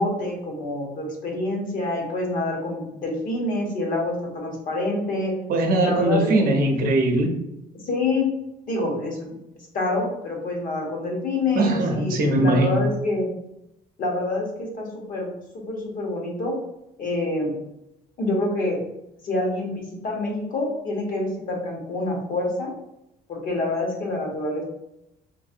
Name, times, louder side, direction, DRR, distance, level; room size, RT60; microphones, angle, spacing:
voice 1, 0.0-5.3 5.8-6.3 7.9-8.3 8.7-9.4 9.7-13.3 14.0-15.3 15.5-16.5 17.0-17.5 18.2-18.8 19.2-22.7 23.3-24.6, left 2 dB, 55° left, 0 dB, 1.0 m, -26 dB
voice 2, 5.5-7.3 11.5-12.8, right 2 dB, 60° right, 2 dB, 0.7 m, -20 dB
3.2 x 2.6 x 2.5 m, 0.83 s
cardioid pair, 110°, 17 cm